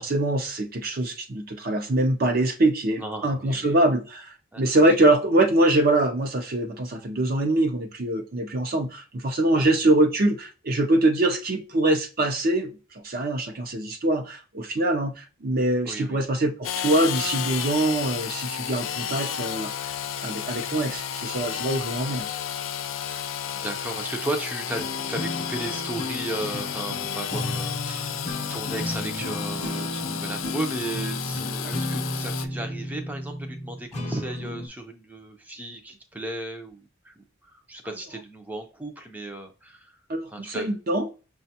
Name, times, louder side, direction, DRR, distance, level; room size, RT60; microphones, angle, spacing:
voice 1, 0.0-12.7 13.0-19.7 20.2-22.3 31.6-31.7 40.1-41.1, right 1 dB, 50° right, 0.6 m, -23 dB
voice 2, 2.9-3.7 4.5-4.6 5.1-5.2 9.5-9.7 15.8-16.2 23.1-39.9 40.3-40.7, right 1 dB, 10° right, 0.5 m, -35 dB
Engine / Sawing, 16.6-32.5, left 9 dB, 85° left, 0.4 m, -32 dB
sound 1, 24.7-34.7, left 1 dB, 35° left, 0.7 m, -33 dB
5.9 x 2.3 x 2.7 m
head